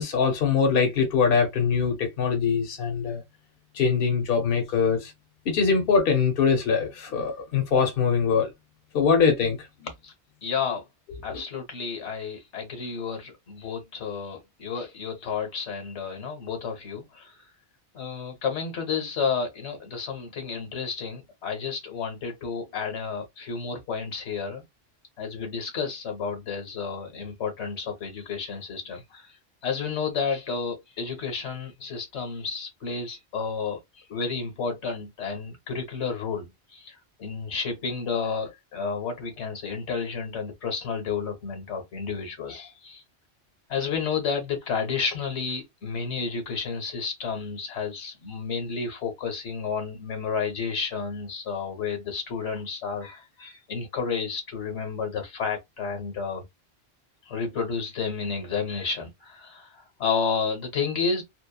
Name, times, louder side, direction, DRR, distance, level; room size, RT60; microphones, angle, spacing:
voice 1, 0.0-3.2 3.7-5.1 5.5-8.5 8.9-9.6 11.3-11.4, left 5 dB, 60° left, 0.9 m, -23 dB
voice 2, 10.4-10.8 11.2-17.4 17.9-24.6 25.2-29.3 29.6-43.0 43.7-56.4 57.3-61.2, left 5 dB, 80° left, 1.1 m, -31 dB
2.9 x 2.1 x 2.2 m
omnidirectional pair, 1.1 m